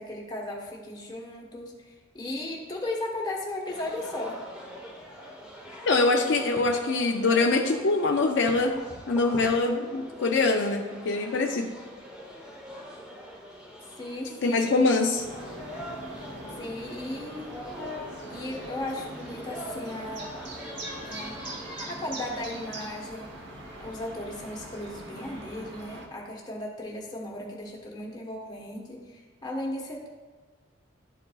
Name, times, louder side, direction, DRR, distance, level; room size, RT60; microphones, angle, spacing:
voice 1, 0.0-4.4 14.0-14.7 16.6-17.5 18.3-20.3 21.0-21.4 21.9-23.3 23.8-30.1, left 1 dB, 20° left, -3 dB, 1.2 m, -36 dB
sound 1, 3.6-21.9, equal, 5° right, 1.1 m, -42 dB
voice 2, 5.9-8.7 9.1-11.7 14.4-15.2, left 3 dB, 60° left, 2 dB, 0.4 m, -24 dB
sound 2, 15.2-26.1, right 1 dB, 60° right, 1.1 m, -42 dB
11.5 x 4.6 x 2.4 m, 1.4 s
head